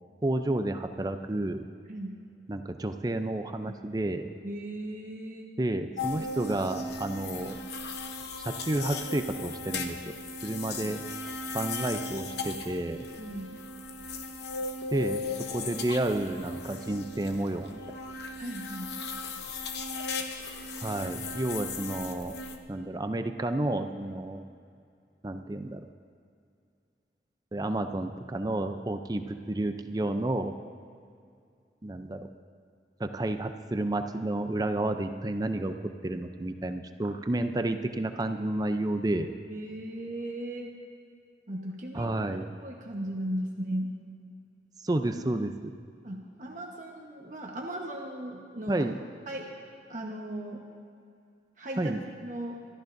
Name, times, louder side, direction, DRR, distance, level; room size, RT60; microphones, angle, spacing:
voice 1, 0.2-1.6 2.5-4.3 5.6-7.6 8.5-10.1 10.4-11.0 11.5-13.1 14.9-17.8 20.8-22.3 22.7-24.4 25.2-25.9 27.5-30.5 31.8-32.2 33.0-35.8 36.0-39.3 41.9-42.5 44.8-45.8 48.7-48.9 51.8-52.0, right 1 dB, 20° right, 7 dB, 0.5 m, -31 dB
voice 2, 4.4-5.5 10.7-11.0 13.2-13.6 18.4-18.9 39.5-40.8 41.5-43.9 46.0-48.8 49.3-49.6 49.9-50.6 51.6-52.0 52.2-52.6, right 1 dB, 45° right, -1 dB, 1.2 m, -37 dB
sound 1, 6.0-22.6, left 3 dB, 70° left, 0.9 m, -37 dB
24.5 x 14.0 x 2.6 m, 2.4 s
head